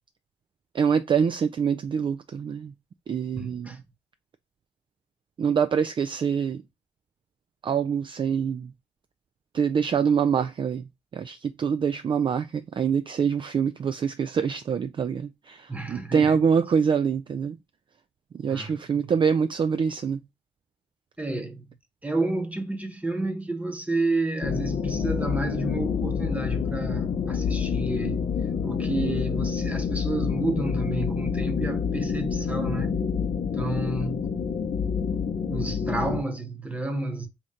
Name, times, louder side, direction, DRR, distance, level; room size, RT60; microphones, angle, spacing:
voice 1, 0.7-2.7 3.1-3.7 5.4-6.6 7.6-8.7 9.5-10.8 11.1-17.6 18.3-20.2, right 6 dB, 40° right, 0.3 m, -25 dB
voice 2, 3.4-3.8 15.7-16.4 18.5-19.1 21.2-21.7 22.0-28.2 28.6-32.9 33.5-34.4 35.5-37.3, right 2 dB, 10° right, 1.0 m, -30 dB
sound 1, 24.4-36.2, left 6 dB, 55° left, 0.7 m, -28 dB
3.1 x 2.8 x 3.7 m
hypercardioid pair, 40°, 14 cm